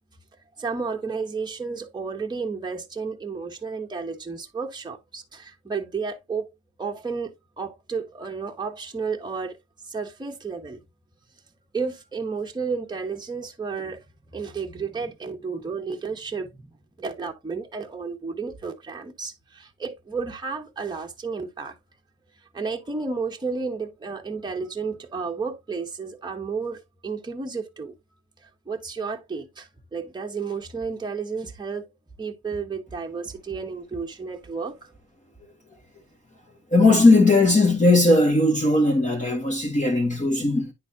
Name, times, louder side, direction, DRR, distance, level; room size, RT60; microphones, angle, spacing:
voice 1, 0.6-6.5 6.8-9.6 9.8-10.8 11.7-14.0 14.3-21.7 22.5-27.9 28.4-31.9 32.2-34.9, right 5 dB, 15° right, 1.1 m, -32 dB
voice 2, 36.7-40.7, left 2 dB, 25° left, 1.7 m, -18 dB
9.8 x 4.0 x 2.8 m
cardioid pair, 90°, 30 cm